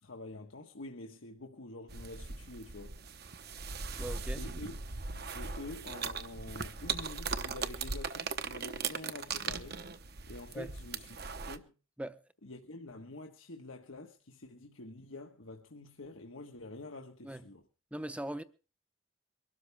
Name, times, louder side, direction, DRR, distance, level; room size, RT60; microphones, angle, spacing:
voice 1, 0.0-2.9 4.4-4.8 5.3-9.8 10.3-11.2 11.4-11.7 12.4-17.6, left 2 dB, 80° left, 1.4 m, -47 dB
sound 1, 1.9-11.6, right 5 dB, 50° right, 1.0 m, -39 dB
voice 2, 4.0-4.4 10.5-10.7 12.0-12.2 17.2-17.4 17.9-18.4, right 1 dB, 5° right, 0.7 m, -40 dB
23.0 x 12.5 x 3.5 m
head